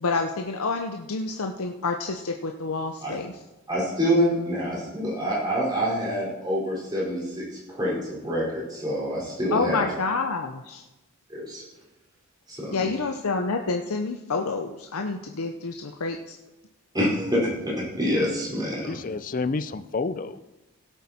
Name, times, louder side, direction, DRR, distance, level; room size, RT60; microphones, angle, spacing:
voice 1, 0.0-3.4 9.5-10.8 12.7-16.4, left 4 dB, 80° left, 4 dB, 0.7 m, -28 dB
voice 2, 3.7-9.8 11.3-11.6 12.5-12.9 16.9-18.9, equal, 20° right, -6 dB, 4.4 m, -26 dB
voice 3, 18.9-20.4, left 3 dB, 40° left, 13 dB, 0.5 m, -29 dB
17.0 x 8.1 x 4.3 m, 1.0 s
head